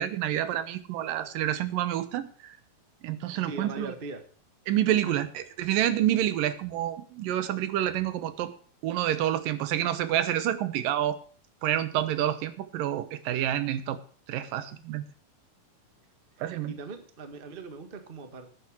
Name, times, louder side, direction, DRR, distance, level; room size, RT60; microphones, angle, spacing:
voice 1, 0.0-2.6 3.0-3.9 4.7-8.5 8.8-11.2 11.6-14.0 14.3-15.0 16.4-16.7, right 12 dB, 85° right, 13 dB, 2.7 m, -28 dB
voice 2, 3.4-4.2 5.0-5.2 16.7-18.6, right 4 dB, 55° right, 8 dB, 0.6 m, -39 dB
11.0 x 9.2 x 6.0 m, 0.42 s
omnidirectional pair, 3.8 m